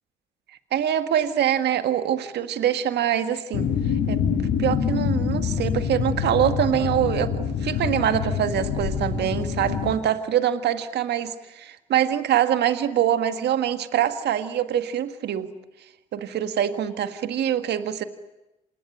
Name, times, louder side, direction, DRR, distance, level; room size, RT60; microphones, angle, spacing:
voice 1, 0.7-3.7 4.1-4.2 4.6-15.5 16.1-18.0, right 10 dB, 65° right, 9 dB, 1.7 m, -24 dB
sound 1, 3.5-9.9, left 7 dB, 75° left, 2.4 m, -26 dB
27.5 x 19.0 x 9.9 m, 0.96 s
hypercardioid pair, 45°, 18 cm